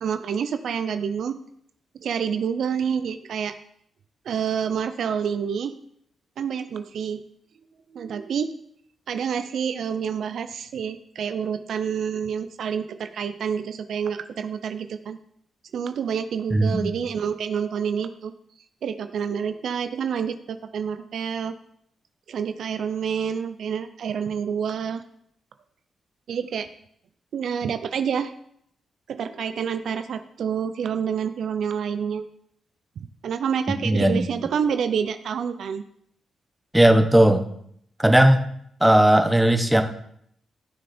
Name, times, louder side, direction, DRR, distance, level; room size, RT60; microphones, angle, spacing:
voice 1, 0.0-1.4 2.0-3.5 4.3-5.8 6.4-7.2 7.9-8.5 9.1-15.2 15.7-18.3 18.8-21.5 22.3-25.0 26.3-26.7 27.3-28.3 29.1-32.3 33.2-35.8, right 7 dB, 75° right, 10 dB, 0.6 m, -28 dB
voice 2, 16.5-16.9 33.7-34.3 36.7-37.4 38.0-38.5 38.8-39.8, right 1 dB, 5° right, 6 dB, 1.3 m, -17 dB
14.5 x 6.5 x 4.4 m, 0.70 s
cardioid pair, 75°, 0 cm